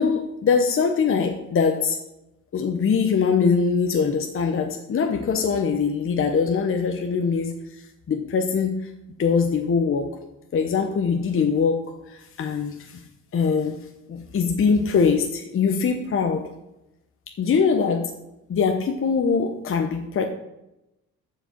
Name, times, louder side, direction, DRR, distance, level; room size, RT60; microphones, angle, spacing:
voice 1, 0.0-2.0 2.5-8.8 9.2-10.1 10.5-13.0 13.3-13.8 14.1-16.4 17.4-18.1 18.5-20.3, left 5 dB, 45° left, 4 dB, 0.9 m, -22 dB
13.5 x 5.1 x 4.5 m, 0.91 s
cardioid pair, 90°, 30 cm